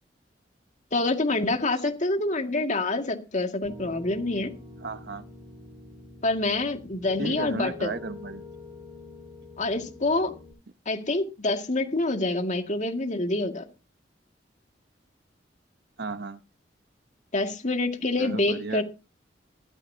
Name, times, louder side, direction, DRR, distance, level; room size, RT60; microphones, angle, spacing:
voice 1, 0.9-4.5 6.2-8.0 9.6-10.3 10.9-13.6 17.3-18.8, left 2 dB, 45° left, 5 dB, 2.1 m, -26 dB
Piano, 3.6-10.5, left 3 dB, 35° right, 6.6 m, -45 dB
voice 2, 4.8-5.2 7.2-8.4 16.0-16.4 18.2-18.8, right 3 dB, 65° right, 12 dB, 0.9 m, -34 dB
16.0 x 13.0 x 2.8 m, 0.30 s
head